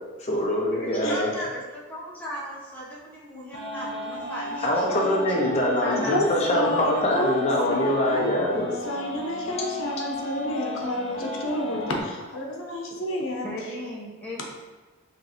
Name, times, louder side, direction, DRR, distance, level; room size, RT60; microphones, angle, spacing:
voice 1, 0.2-1.3 4.6-8.7, left 1 dB, 30° left, -3 dB, 0.7 m, -24 dB
voice 2, 0.7-5.2 5.6-6.2 13.4-14.4, equal, 10° left, -6 dB, 1.0 m, -37 dB
sound 1, 3.5-12.0, left 1 dB, 65° left, 1.5 m, -34 dB
voice 3, 6.0-6.3 6.5-8.3 8.8-13.5, left 1 dB, 80° left, 0 dB, 0.9 m, -30 dB
5.1 x 3.1 x 3.0 m, 1.3 s
head